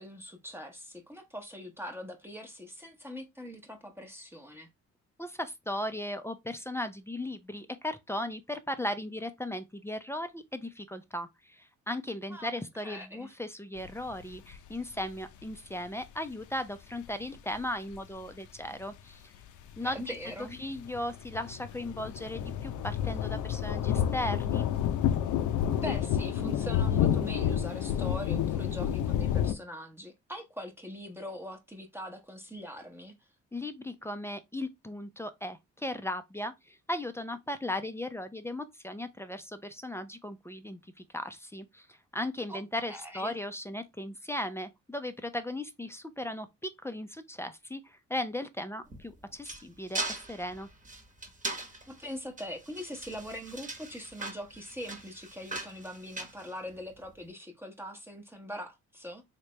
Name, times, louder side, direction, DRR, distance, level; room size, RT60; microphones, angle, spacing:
voice 1, 0.0-4.7 12.3-12.5 12.8-13.4 19.9-20.6 25.8-33.1 42.5-42.6 42.9-43.3 51.9-59.2, equal, 10° right, 0.8 m, -42 dB
voice 2, 5.2-19.2 19.8-20.1 20.6-24.7 33.5-41.9 42.1-50.7, left 1 dB, 10° left, 0.4 m, -37 dB
sound 1, 13.8-14.6 15.1-15.2 15.5-15.6 17.9-18.0 19.8-20.0 20.3-29.5, left 10 dB, 80° left, 0.6 m, -29 dB
sound 2, 48.9-57.1, right 2 dB, 25° right, 1.1 m, -40 dB
3.3 x 2.8 x 3.1 m
cardioid pair, 90°, 30 cm